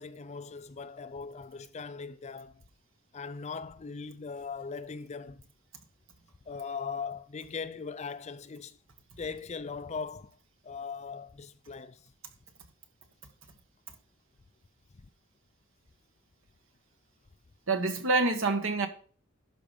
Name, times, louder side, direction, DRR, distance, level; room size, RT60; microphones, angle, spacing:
voice 1, 0.0-2.6 3.1-5.4 6.5-8.8 9.2-10.3 10.6-12.1, left 5 dB, 30° left, 0.4 m, -39 dB
voice 2, 17.7-18.9, right 3 dB, 60° right, 1.4 m, -26 dB
12.0 x 5.0 x 5.2 m
head